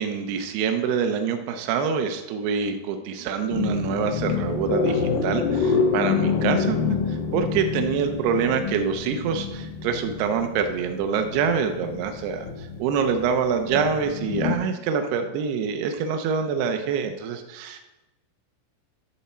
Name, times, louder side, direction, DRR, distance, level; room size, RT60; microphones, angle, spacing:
voice 1, 0.0-6.8 7.1-12.5 12.8-17.8, right 6 dB, 80° right, 6 dB, 2.3 m, -25 dB
sound 1, 3.5-14.6, left 5 dB, 85° left, 2.0 m, -27 dB
11.0 x 7.1 x 4.3 m, 1.0 s
omnidirectional pair, 5.6 m